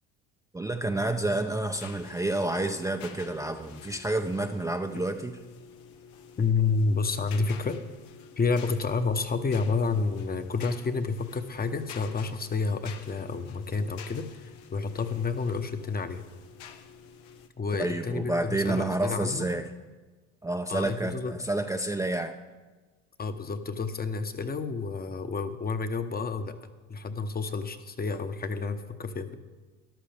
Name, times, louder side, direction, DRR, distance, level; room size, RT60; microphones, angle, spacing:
voice 1, 0.5-5.4 17.8-19.7 20.4-22.4, right 2 dB, 10° right, 4 dB, 0.6 m, -29 dB
sound 1, 1.7-17.5, left 7 dB, 75° left, 1.0 m, -49 dB
voice 2, 6.4-7.8 8.4-16.2 17.6-19.4 20.7-21.3 23.2-26.6 26.9-29.3, left 4 dB, 25° left, 9 dB, 1.0 m, -29 dB
13.5 x 11.5 x 3.5 m, 1.3 s
supercardioid pair, 80°, 35 cm